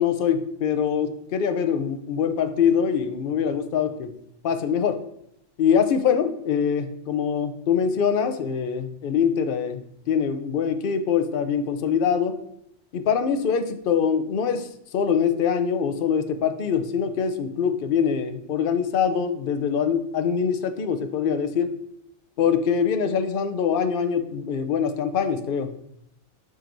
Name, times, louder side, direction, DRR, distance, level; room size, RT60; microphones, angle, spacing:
voice 1, 0.0-4.1 4.4-5.0 5.6-9.8 10.1-12.4 12.9-21.7 22.4-25.7, left 7 dB, 50° left, 7 dB, 0.8 m, -24 dB
7.6 x 6.0 x 2.6 m, 0.77 s
omnidirectional pair, 1.3 m